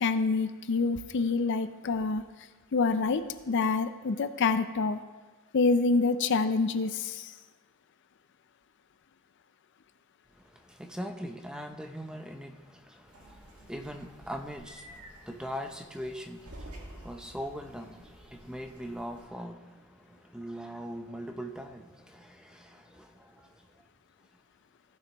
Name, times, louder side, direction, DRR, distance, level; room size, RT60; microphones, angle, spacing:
voice 1, 0.0-2.3 2.7-5.0 5.5-7.3, left 4 dB, 55° left, 0.4 m, -27 dB
voice 2, 10.4-23.7, equal, 5° right, 0.5 m, -41 dB
sound 1, 13.1-19.3, right 1 dB, 85° right, 1.8 m, -51 dB
15.5 x 6.7 x 3.0 m
head